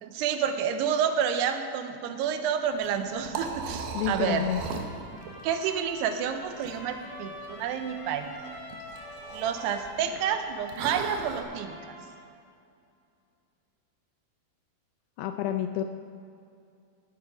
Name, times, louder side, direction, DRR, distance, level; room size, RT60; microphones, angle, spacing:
voice 1, 0.0-4.5 5.4-8.3 9.3-11.8, right 8 dB, 90° right, 8 dB, 2.9 m, -29 dB
Liquid, 2.7-11.4, right 5 dB, 75° right, 2.8 m, -39 dB
voice 2, 3.9-4.6 15.2-15.8, left 12 dB, 80° left, 7 dB, 2.2 m, -29 dB
Trumpet, 4.6-12.2, left 1 dB, 55° left, 3.9 m, -46 dB
18.0 x 8.9 x 4.9 m, 2.4 s
omnidirectional pair, 4.7 m